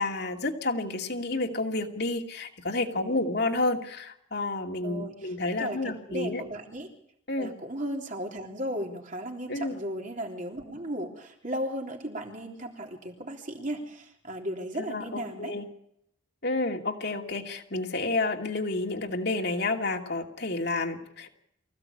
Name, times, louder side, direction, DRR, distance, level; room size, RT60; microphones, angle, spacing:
voice 1, 0.0-6.4 7.3-7.5 9.5-9.8 14.8-15.7 16.4-21.3, left 2 dB, 55° left, 3 dB, 2.5 m, -30 dB
voice 2, 2.9-3.3 4.8-6.9 7.4-15.5, equal, 40° right, 2 dB, 3.4 m, -36 dB
24.0 x 15.5 x 8.6 m, 0.73 s
head